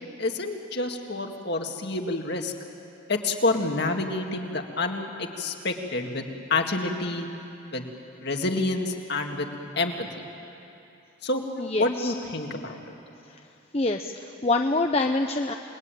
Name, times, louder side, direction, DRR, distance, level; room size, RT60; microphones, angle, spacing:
voice 1, 0.0-2.5 3.1-7.3 7.7-7.9 8.2-10.2 11.2-12.9, left 2 dB, 50° left, 4 dB, 2.0 m, -28 dB
voice 2, 11.6-12.1 13.2-13.4 13.7-15.5, left 2 dB, 30° left, 4 dB, 0.7 m, -26 dB
28.5 x 20.5 x 9.1 m, 2.8 s
head